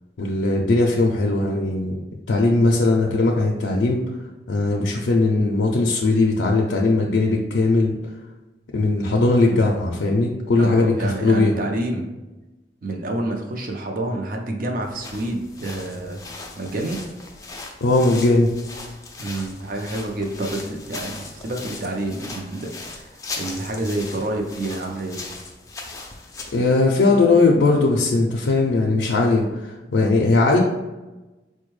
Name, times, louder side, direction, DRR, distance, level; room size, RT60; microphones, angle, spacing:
voice 1, 0.2-1.9 2.3-4.0 4.5-8.0 8.7-11.5 17.8-18.5 26.5-30.6, left 2 dB, 90° left, -1 dB, 0.4 m, -19 dB
voice 2, 10.6-12.1 12.8-16.2 16.6-17.0 19.2-25.2, right 1 dB, 50° right, 3 dB, 0.5 m, -28 dB
sound 1, 14.8-26.7, left 3 dB, 20° left, 0.4 m, -38 dB
4.3 x 2.2 x 3.1 m, 1.1 s
head